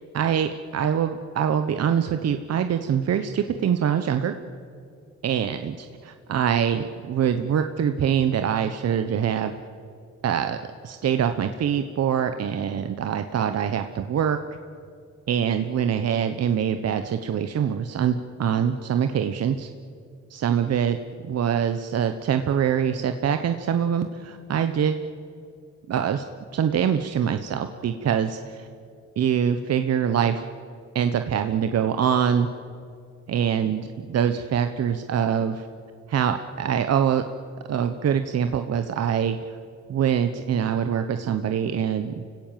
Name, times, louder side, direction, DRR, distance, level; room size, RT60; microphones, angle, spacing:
voice 1, 0.0-4.3 5.2-9.5 10.2-10.6 10.8-14.4 15.3-19.7 20.3-21.0 21.2-25.0 25.9-26.2 26.5-28.7 29.2-30.4 30.9-32.5 33.3-35.7 36.1-37.2 37.7-39.6 39.9-42.2, right 8 dB, 55° right, 8 dB, 1.1 m, -24 dB
29.5 x 17.0 x 7.5 m, 2.4 s
cardioid pair, 90°, 30 cm